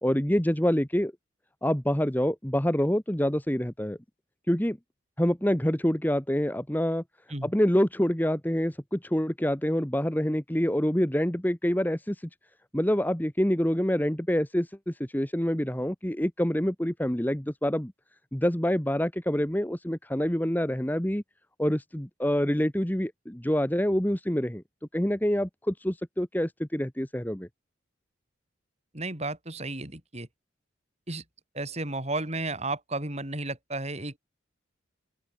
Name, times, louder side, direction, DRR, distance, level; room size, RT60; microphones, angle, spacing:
voice 1, 0.0-1.1 1.6-4.0 4.5-4.8 5.2-7.0 7.4-12.2 12.7-17.9 18.3-21.2 21.6-24.6 24.9-27.5, equal, 10° left, 1.3 m, -26 dB
voice 2, 28.9-30.3 31.1-31.2 31.5-34.2, right 2 dB, 35° right, 4.6 m, -33 dB
open air
head